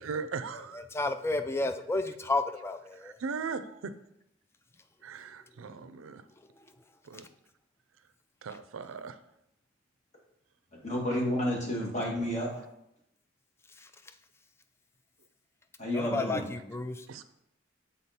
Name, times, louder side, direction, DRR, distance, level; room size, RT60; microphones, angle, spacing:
voice 1, 0.0-0.9 2.9-3.9 5.0-6.2 7.0-7.2 8.4-9.2 17.1-17.2, right 5 dB, 85° right, 11 dB, 0.5 m, -38 dB
voice 2, 0.9-3.2 13.8-13.9 15.9-17.1, left 2 dB, 15° left, 9 dB, 0.3 m, -31 dB
voice 3, 10.8-12.6 15.8-16.4, equal, 35° left, -2 dB, 1.6 m, -30 dB
6.9 x 3.7 x 4.2 m, 0.80 s
head